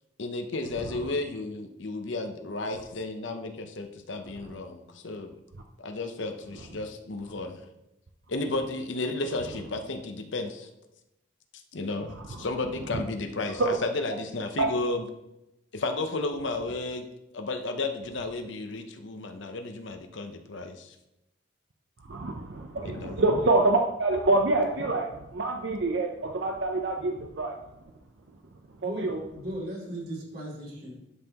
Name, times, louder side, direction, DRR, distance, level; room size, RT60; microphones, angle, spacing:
voice 1, 0.2-5.4 5.8-7.6 8.3-10.7 11.7-15.0 15.7-17.1 17.3-20.9 22.8-23.2, left 2 dB, 70° left, 6 dB, 0.7 m, -33 dB
voice 2, 22.0-27.5 28.8-29.2, right 2 dB, 65° right, 3 dB, 0.6 m, -26 dB
voice 3, 28.8-30.9, equal, 50° right, -4 dB, 2.8 m, -37 dB
11.0 x 5.6 x 2.9 m, 0.90 s
head